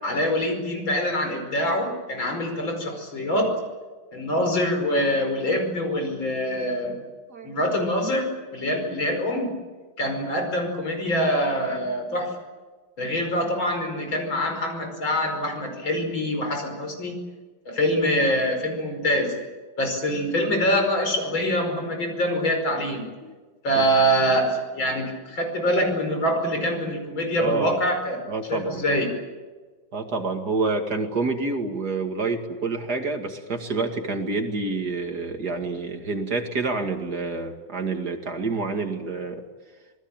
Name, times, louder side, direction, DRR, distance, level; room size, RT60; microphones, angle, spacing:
voice 1, 0.0-3.6 4.1-7.0 7.4-9.6 10.0-12.3 13.0-17.1 17.7-19.3 19.8-23.1 23.6-28.2 28.5-29.1, equal, 80° left, 4 dB, 6.1 m, -24 dB
voice 2, 7.3-7.7 23.2-23.3 23.7-23.8 27.4-27.8 28.3-28.9 29.9-39.4, right 3 dB, 55° right, 4 dB, 2.7 m, -28 dB
27.0 x 19.5 x 9.0 m, 1.3 s
omnidirectional pair, 2.1 m